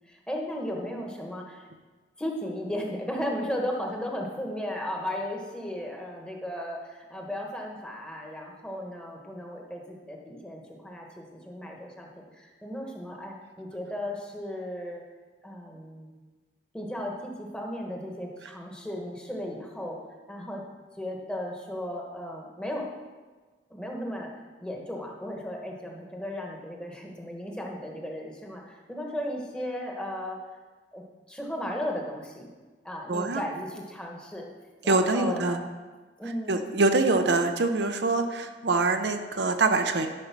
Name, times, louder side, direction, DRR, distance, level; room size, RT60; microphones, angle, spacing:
voice 1, 0.1-1.7 2.2-15.0 15.4-16.1 16.7-20.0 20.3-20.6 21.0-22.8 23.7-24.3 24.6-30.4 30.9-31.0 31.3-32.5 32.8-34.5 34.8-35.7 36.2-36.8, left 1 dB, 5° left, 0 dB, 1.3 m, -35 dB
voice 2, 33.1-33.4 34.9-35.6 36.5-40.1, right 3 dB, 70° right, 6 dB, 0.7 m, -24 dB
12.0 x 5.4 x 6.0 m, 1.3 s
head